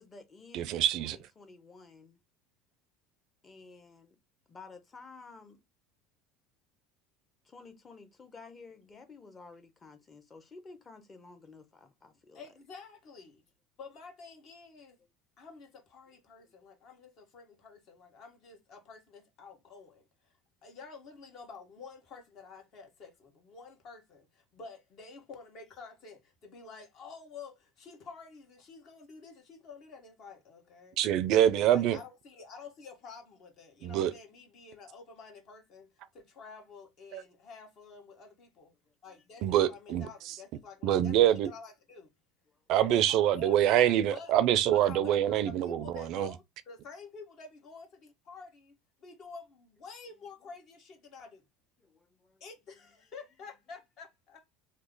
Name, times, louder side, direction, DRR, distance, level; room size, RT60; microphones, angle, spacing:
voice 1, 0.0-2.2 3.4-4.2 4.5-5.6 7.5-12.4 51.8-52.4, left 4 dB, 25° left, 0.9 m, -52 dB
voice 2, 0.5-1.2 31.0-32.0 33.8-34.1 37.1-37.2 39.4-40.3 40.8-41.5 42.7-46.3, right 11 dB, 60° right, 0.4 m, -25 dB
voice 3, 12.3-13.4 13.8-15.0 15.4-20.3 20.6-31.0 31.7-35.9 36.1-38.7 39.0-42.1 42.8-43.8 44.1-44.3 44.7-48.7 49.0-51.4 52.4-54.6, left 5 dB, 55° left, 1.3 m, -49 dB
3.0 x 2.1 x 3.8 m
supercardioid pair, 105°, 0 cm